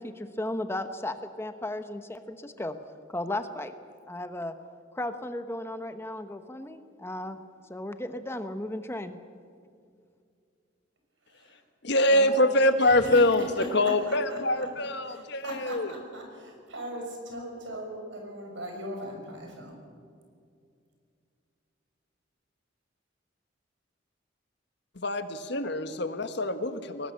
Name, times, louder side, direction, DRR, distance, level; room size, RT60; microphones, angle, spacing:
voice 1, 0.0-2.7 3.1-3.7 4.1-4.5 4.9-7.4 7.7-9.2, left 1 dB, 15° left, 9 dB, 1.0 m, -35 dB
voice 2, 11.8-15.9 24.9-27.1, left 1 dB, 65° left, 9 dB, 1.4 m, -24 dB
voice 3, 12.8-13.2 13.6-19.8, right 1 dB, 80° right, 2 dB, 5.9 m, -39 dB
23.0 x 19.0 x 7.6 m, 2.3 s
head